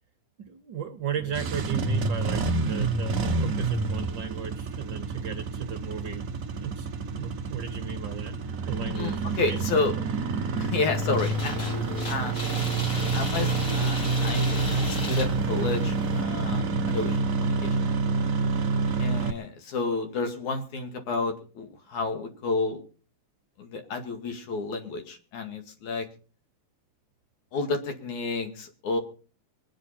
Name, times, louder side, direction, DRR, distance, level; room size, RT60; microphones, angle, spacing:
voice 1, 0.4-8.4 8.7-9.6, right 8 dB, 60° right, 7 dB, 1.2 m, -36 dB
Engine starting, 1.2-19.3, right 3 dB, 85° right, 0.7 m, -28 dB
voice 2, 9.0-10.0 10.6-12.3 13.1-17.9 19.0-22.8 23.6-26.1 27.5-29.0, left 3 dB, 80° left, 5 dB, 3.6 m, -31 dB
sound 1, 11.2-16.2, left 3 dB, 45° left, 4.4 m, -36 dB
24.0 x 9.4 x 4.3 m, 0.39 s
omnidirectional pair, 3.4 m